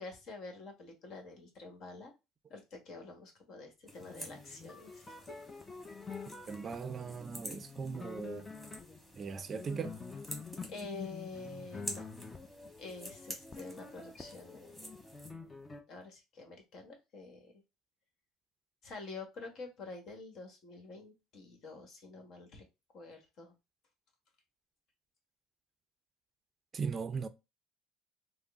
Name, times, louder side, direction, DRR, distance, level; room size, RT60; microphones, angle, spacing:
voice 1, 0.0-2.1 2.5-5.4 10.7-12.1 12.8-14.9 15.9-17.5 18.8-22.6 22.9-23.5, left 3 dB, 55° left, 1.3 m, -48 dB
sound 1, 3.9-15.3, right 1 dB, ahead, 1.3 m, -50 dB
sound 2, 4.0-15.8, left 4 dB, 20° left, 0.6 m, -47 dB
voice 2, 6.5-8.5 9.2-10.0 26.7-27.3, right 5 dB, 35° right, 0.4 m, -38 dB
3.6 x 2.0 x 3.5 m
supercardioid pair, 95°, 0 cm